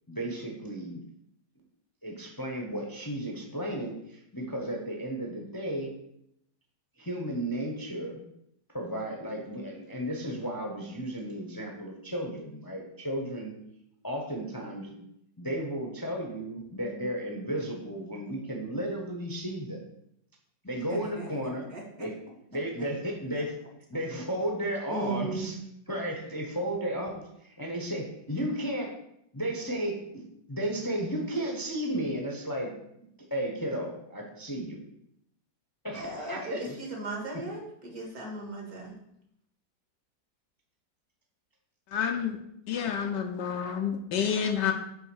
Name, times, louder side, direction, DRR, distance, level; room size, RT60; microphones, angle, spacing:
voice 1, 0.1-1.0 2.0-5.9 7.0-8.2 8.7-13.5 14.0-15.0 15.4-19.8 20.6-21.7 22.0-22.1 22.5-23.5 23.9-25.5 25.9-28.9 29.3-30.2 30.5-32.7 33.0-34.8 35.8-36.7, right 1 dB, 15° left, 0 dB, 0.8 m, -34 dB
voice 2, 20.9-21.3 21.7-22.1 23.3-23.4 24.9-25.5 35.9-38.9, right 2 dB, 55° right, -1 dB, 2.3 m, -36 dB
voice 3, 41.9-42.4 42.7-44.7, left 7 dB, 75° left, 4 dB, 1.3 m, -29 dB
7.8 x 3.6 x 6.2 m, 0.77 s
omnidirectional pair, 2.0 m